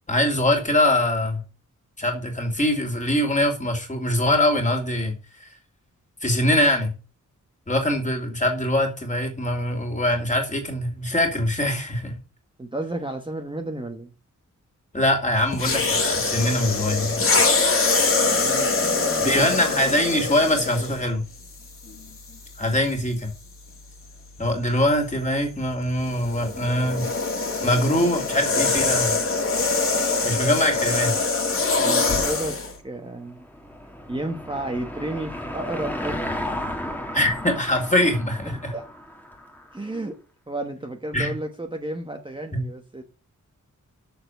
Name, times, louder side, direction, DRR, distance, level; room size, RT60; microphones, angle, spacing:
voice 1, 0.1-1.4 2.0-5.1 5.4-5.5 6.2-6.9 7.7-12.1 14.9-17.2 19.2-21.2 22.6-23.3 24.4-27.0 27.6-29.1 30.2-31.1 37.1-38.7 41.1-41.3 42.5-42.6, left 1 dB, 25° left, 3 dB, 2.9 m, -23 dB
voice 2, 12.6-14.1 18.2-19.7 31.8-32.6 32.8-33.4 34.1-36.6 38.4-38.8 39.7-40.2 40.5-43.0, right 2 dB, 15° right, 3 dB, 1.2 m, -32 dB
sound 1, 15.5-21.1 21.9-22.1 26.0-32.7, left 3 dB, 45° left, 2.0 m, -23 dB
Car passing by / Engine, 33.0-39.8, left 1 dB, 5° left, 1.8 m, -34 dB
7.0 x 6.8 x 7.9 m, 0.32 s
wide cardioid pair, 165°, 31 cm